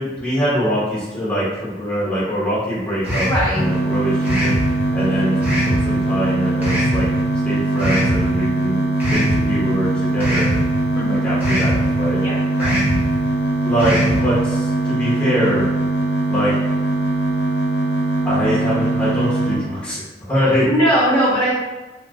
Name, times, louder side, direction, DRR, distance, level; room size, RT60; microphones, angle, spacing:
voice 1, 0.0-4.5 4.9-7.1 7.4-8.8 9.1-10.5 11.2-12.2 13.6-15.7 16.3-16.5 18.2-20.0 20.3-20.7, equal, 5° left, -9 dB, 1.1 m, -23 dB
sound 1, 3.0-3.5 4.2-4.6 5.4-5.8 6.6-7.0 7.8-8.2 9.0-9.4 10.2-10.6 11.4-11.8 12.6-13.0 13.8-14.2, equal, 10° right, 0.8 m, -21 dB
voice 2, 3.1-3.6 10.9-11.2 12.2-12.7 20.7-21.5, equal, 25° left, -11 dB, 0.9 m, -19 dB
sound 2, 3.5-19.6, right 2 dB, 70° left, 0.6 m, -21 dB
2.9 x 2.4 x 2.4 m, 1.2 s
head